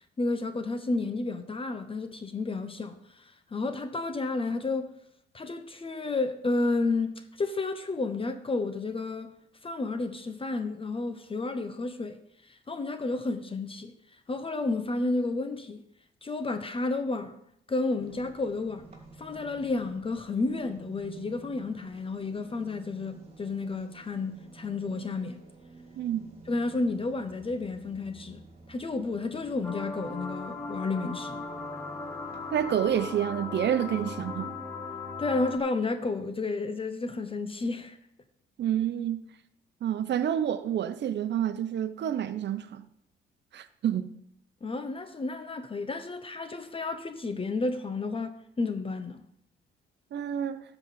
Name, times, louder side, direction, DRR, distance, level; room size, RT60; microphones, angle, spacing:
voice 1, 0.2-3.2 3.5-4.9 5.3-9.3 9.6-12.2 12.5-13.9 14.3-15.8 16.2-17.4 17.7-18.9 19.2-25.4 26.5-28.4 28.7-31.4 35.2-38.0 44.6-49.2, left 3 dB, 25° left, 0.8 m, -31 dB
sound 1, 18.0-33.0, right 3 dB, 30° right, 2.9 m, -52 dB
voice 2, 26.0-26.3 32.5-34.5 38.6-39.2 39.8-42.8 43.5-44.1 50.1-50.6, right 10 dB, 60° right, 0.8 m, -28 dB
sound 2, 29.6-35.6, left 3 dB, 10° left, 1.3 m, -38 dB
12.0 x 4.1 x 7.5 m
cardioid pair, 90°, 20 cm